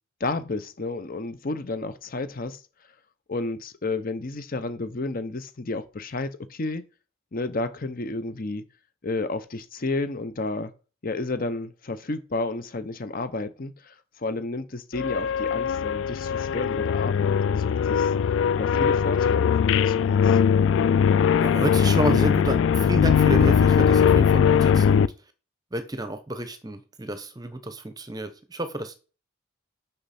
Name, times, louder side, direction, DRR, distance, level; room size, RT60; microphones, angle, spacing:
voice 1, 0.2-2.6 3.3-6.8 7.3-8.6 9.0-10.7 11.0-18.1 18.6-20.4, left 2 dB, 45° left, 0.7 m, -31 dB
sound 1, 14.9-25.1, left 7 dB, 65° left, 0.3 m, -20 dB
voice 2, 21.4-25.1 25.7-28.9, right 1 dB, 20° right, 0.9 m, -30 dB
6.5 x 5.8 x 4.2 m
head